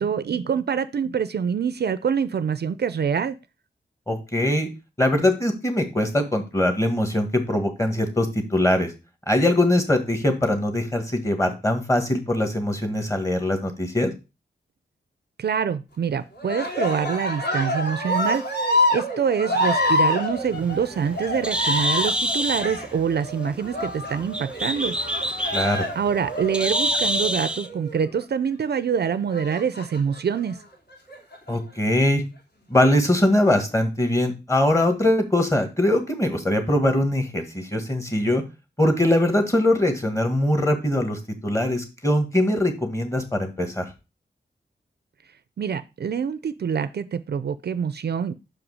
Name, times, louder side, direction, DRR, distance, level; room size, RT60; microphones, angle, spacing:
voice 1, 0.0-3.4 15.4-18.4 18.9-24.9 26.0-30.6 45.6-48.3, right 7 dB, 65° right, 13 dB, 0.5 m, -25 dB
voice 2, 4.1-4.7 5.0-8.9 9.3-14.1 25.5-25.9 31.5-32.2 32.7-38.4 38.8-43.9, left 1 dB, 15° left, 6 dB, 1.5 m, -22 dB
Cheering, 16.4-28.1 29.3-30.2 30.9-31.6, left 1 dB, 60° left, 2.8 m, -27 dB
Bird, 20.4-27.7, equal, 5° right, 0.3 m, -27 dB
6.0 x 5.0 x 4.7 m, 0.29 s
wide cardioid pair, 110°, 19 cm